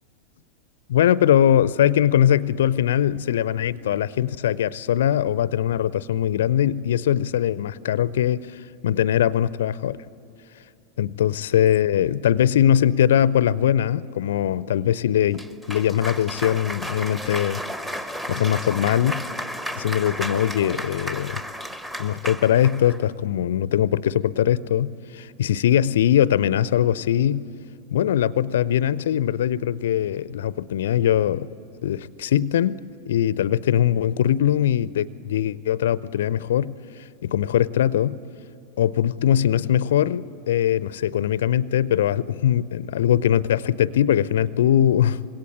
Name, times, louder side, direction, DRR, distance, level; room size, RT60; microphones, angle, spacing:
voice 1, 0.9-10.0 11.0-17.6 18.3-19.2 19.8-21.4 22.0-27.5 27.9-31.5 31.8-32.8 33.1-36.7 37.2-38.2 38.8-45.2, left 10 dB, 60° left, 19 dB, 0.5 m, -21 dB
Cheering / Applause, 15.3-23.0, equal, 10° right, 1.1 m, -33 dB
26.5 x 21.5 x 8.4 m, 2.8 s
figure-of-eight pair, 90°, 0 cm